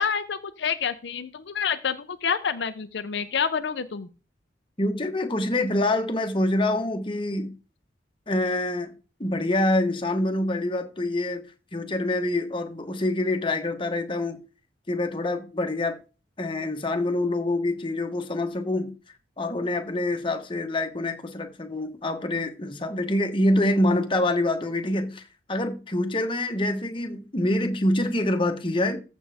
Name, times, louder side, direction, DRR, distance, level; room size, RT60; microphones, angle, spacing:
voice 1, 0.0-4.1, left 6 dB, 70° left, 0.6 m, -28 dB
voice 2, 4.8-7.5 8.3-8.9 9.2-11.4 11.7-14.4 14.9-16.0 16.4-18.9 19.4-29.0, left 1 dB, 30° left, 1.1 m, -26 dB
14.5 x 5.2 x 3.5 m
head